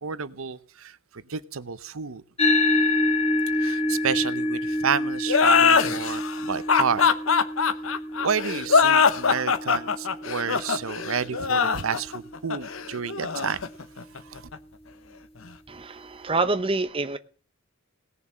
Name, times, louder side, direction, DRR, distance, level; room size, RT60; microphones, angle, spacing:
voice 1, 0.0-2.2 3.6-7.1 8.2-13.6 14.3-14.5, right 6 dB, 80° right, 0.8 m, -30 dB
sound 1, 2.4-11.1, left 2 dB, 30° left, 1.7 m, -27 dB
sound 2, 5.3-14.6, left 5 dB, 75° left, 1.0 m, -22 dB
voice 2, 15.7-17.2, right 3 dB, 25° right, 0.8 m, -26 dB
18.0 x 7.0 x 7.5 m
head